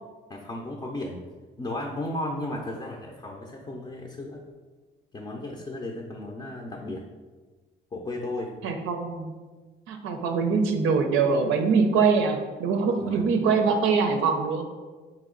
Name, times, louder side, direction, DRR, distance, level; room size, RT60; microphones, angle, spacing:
voice 1, 0.3-1.2 1.6-4.4 5.1-7.0 7.9-8.6 13.0-13.2, left 1 dB, 25° left, 1 dB, 0.5 m, -34 dB
voice 2, 8.6-9.3 9.9-14.6, right 5 dB, 90° right, 5 dB, 0.5 m, -23 dB
4.1 x 2.9 x 3.7 m, 1.3 s
cardioid pair, 90°, 20 cm